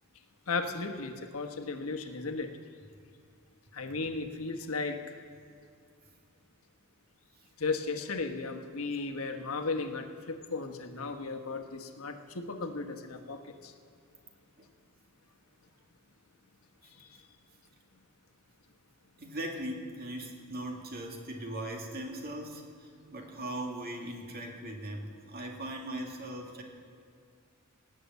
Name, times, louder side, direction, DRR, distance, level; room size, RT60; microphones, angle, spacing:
voice 1, 0.5-2.5 3.7-5.2 7.6-13.7 17.0-17.1, left 3 dB, 85° left, 5 dB, 1.2 m, -35 dB
voice 2, 19.2-22.6 23.1-26.6, right 1 dB, 45° right, 1 dB, 2.1 m, -39 dB
18.5 x 6.7 x 8.2 m, 2.3 s
head